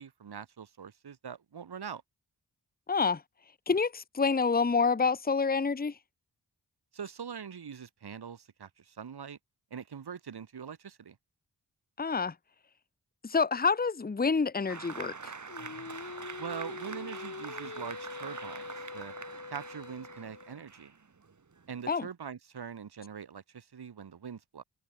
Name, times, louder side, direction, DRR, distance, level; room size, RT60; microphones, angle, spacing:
voice 1, 0.0-2.0 6.9-9.4 9.7-11.1 16.4-19.1 19.5-20.9 21.7-24.6, right 7 dB, 85° right, 6.7 m, -43 dB
voice 2, 2.9-3.2 3.7-6.0 12.0-12.3 13.2-15.3 21.9-22.1, left 5 dB, 25° left, 1.0 m, -27 dB
Applause, 14.7-21.9, right 5 dB, 50° right, 4.4 m, -45 dB
Singing, 15.5-20.6, left 4 dB, 50° left, 6.5 m, -44 dB
wide cardioid pair, 95°, 38 cm